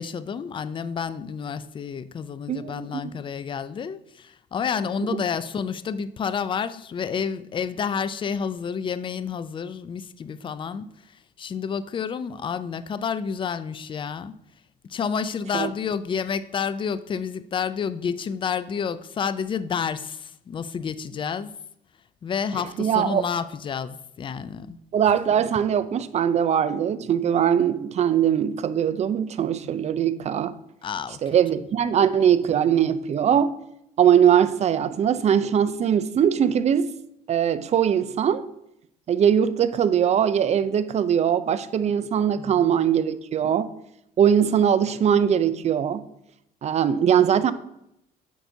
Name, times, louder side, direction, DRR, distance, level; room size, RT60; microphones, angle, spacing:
voice 1, 0.0-14.3 14.8-21.5 22.2-24.8 30.8-31.4 42.4-42.7, left 6 dB, 30° left, 0.4 m, -30 dB
voice 2, 2.5-3.1 5.1-5.2 15.5-15.7 22.8-23.2 24.9-30.5 31.2-33.5 34.0-36.9 37.3-38.4 39.1-43.8 44.2-46.0 46.6-47.5, right 8 dB, 40° right, 0.5 m, -21 dB
9.1 x 5.8 x 2.7 m
cardioid pair, 110°, 17 cm